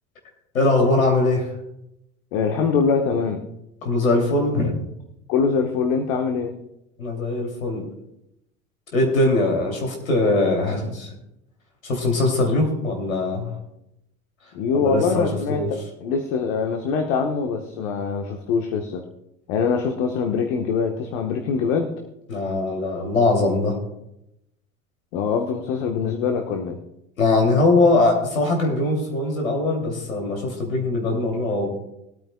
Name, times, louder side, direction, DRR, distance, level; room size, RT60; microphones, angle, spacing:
voice 1, 0.5-1.5 3.8-4.8 7.0-7.9 8.9-11.1 11.8-13.5 14.7-15.7 22.3-23.8 27.2-31.7, left 2 dB, 90° left, 1 dB, 2.8 m, -21 dB
voice 2, 2.3-3.4 5.3-6.5 14.5-19.0 19.5-21.9 25.1-26.8, left 5 dB, 65° left, 4 dB, 1.2 m, -23 dB
20.5 x 8.9 x 2.2 m, 0.86 s
hypercardioid pair, 80°, 40 cm